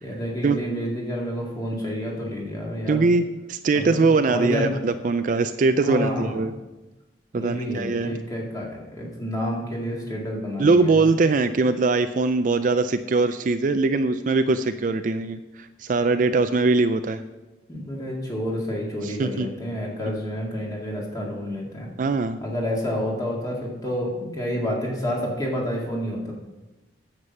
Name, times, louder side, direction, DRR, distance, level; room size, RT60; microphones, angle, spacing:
voice 1, 0.0-3.1 3.7-4.8 5.8-6.5 7.3-11.0 17.7-21.9 22.4-26.3, equal, 20° left, -2 dB, 2.0 m, -29 dB
voice 2, 2.9-3.2 3.5-6.5 7.3-8.1 10.6-17.2 19.0-19.5 22.0-22.4, right 3 dB, 45° right, 10 dB, 0.4 m, -21 dB
9.6 x 7.4 x 5.4 m, 1.1 s
head